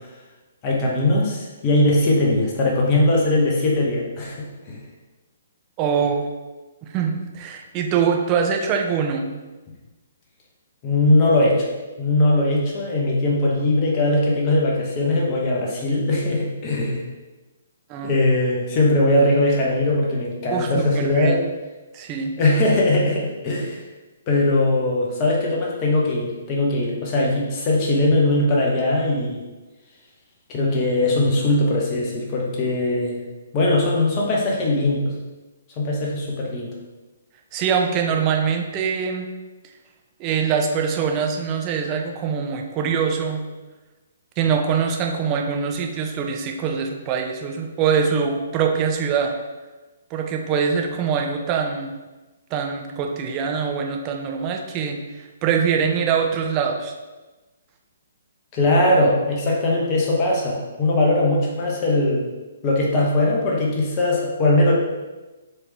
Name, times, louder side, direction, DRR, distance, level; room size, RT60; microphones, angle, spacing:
voice 1, 0.6-4.8 10.8-11.7 12.0-17.1 18.0-21.4 22.4-23.8 24.3-29.4 30.5-33.2 33.5-35.1 35.8-36.7 58.5-62.2 62.6-64.7, left 2 dB, 30° left, -3 dB, 1.1 m, -20 dB
voice 2, 5.8-6.3 6.8-9.3 17.9-18.2 20.5-21.4 21.9-22.3 37.5-39.3 40.2-43.4 44.4-49.3 50.1-51.9 52.5-55.0 55.4-56.9, right 6 dB, 25° right, 2 dB, 0.6 m, -23 dB
4.5 x 3.4 x 3.4 m, 1.2 s
figure-of-eight pair, 125°, 0 cm